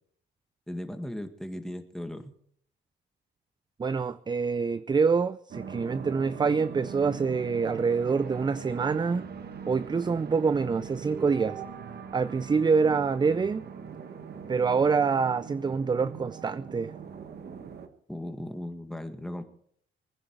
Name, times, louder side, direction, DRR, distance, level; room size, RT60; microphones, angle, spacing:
voice 1, 0.7-2.3 18.1-19.4, left 1 dB, ahead, 1.7 m, -37 dB
voice 2, 3.8-9.2 9.7-11.6 12.1-13.7 14.5-16.9, right 5 dB, 20° right, 0.5 m, -26 dB
sound 1, 5.5-17.9, right 6 dB, 55° right, 1.4 m, -41 dB
23.0 x 10.0 x 4.6 m
cardioid pair, 90°, 20 cm